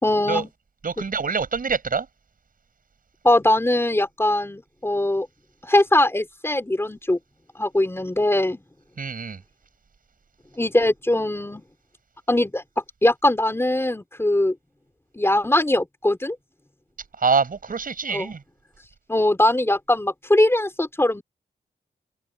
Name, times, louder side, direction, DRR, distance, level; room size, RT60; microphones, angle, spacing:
voice 1, 0.0-0.5 1.0-1.1 3.2-5.3 5.6-7.2 7.6-8.6 10.6-11.6 12.3-12.6 13.0-14.5 15.2-16.4 18.1-18.3 19.1-21.2, left 1 dB, 15° left, 4.6 m, -21 dB
voice 2, 0.8-2.1 9.0-9.4 17.2-18.4, right 5 dB, 55° right, 7.3 m, -25 dB
wide cardioid pair, 145°, 18 cm